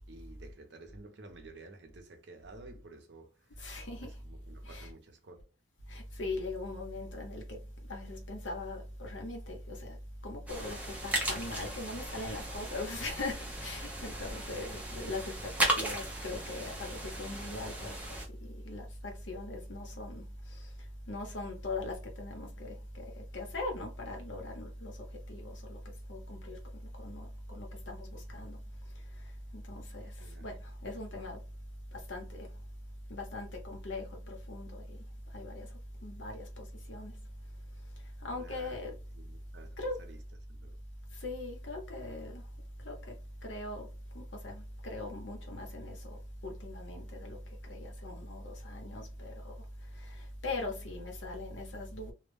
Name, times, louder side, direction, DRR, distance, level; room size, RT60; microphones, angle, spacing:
voice 1, 0.0-3.4 4.2-5.5 30.2-30.5 38.3-40.2 40.5-40.8, right 2 dB, 65° right, 0.6 m, -52 dB
voice 2, 3.6-4.2 4.6-4.9 5.9-31.5 31.9-32.7 33.1-37.2 37.8-39.0 39.8-40.0 41.1-42.5 42.8-52.1, left 2 dB, 80° left, 0.9 m, -41 dB
sound 1, 10.5-18.3, right 1 dB, 10° right, 0.5 m, -36 dB
2.2 x 2.1 x 3.2 m
head